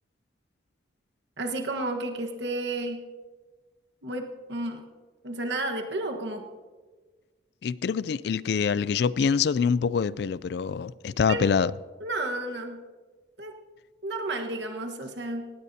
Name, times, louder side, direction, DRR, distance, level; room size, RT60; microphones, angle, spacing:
voice 1, 1.4-3.0 4.0-4.8 5.2-6.5 11.3-11.4 12.0-12.8 13.4-13.5 14.0-15.5, right 2 dB, 70° right, 1.4 m, -32 dB
voice 2, 7.6-11.7, left 6 dB, 60° left, 0.3 m, -25 dB
18.0 x 16.0 x 2.8 m
head